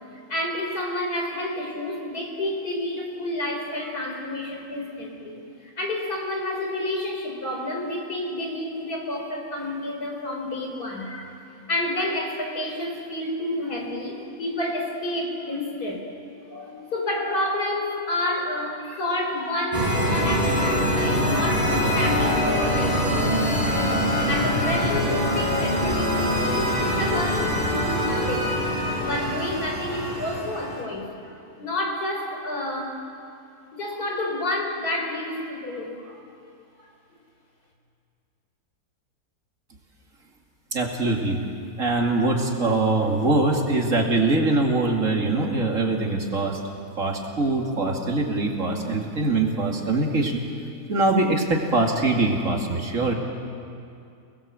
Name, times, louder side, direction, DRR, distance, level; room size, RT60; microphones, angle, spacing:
voice 1, 0.3-11.4 11.7-16.0 16.4-28.6 29.0-33.0 33.7-36.2 36.8-36.9, left 1 dB, 90° left, 1 dB, 4.7 m, -30 dB
sound 1, 19.7-30.8, equal, 25° right, 4.9 m, -24 dB
voice 2, 40.7-41.4 41.8-46.6 47.0-50.4 50.9-53.1, right 2 dB, 60° right, 1 dB, 2.9 m, -23 dB
29.0 x 20.5 x 7.8 m, 2.5 s
omnidirectional pair, 1.6 m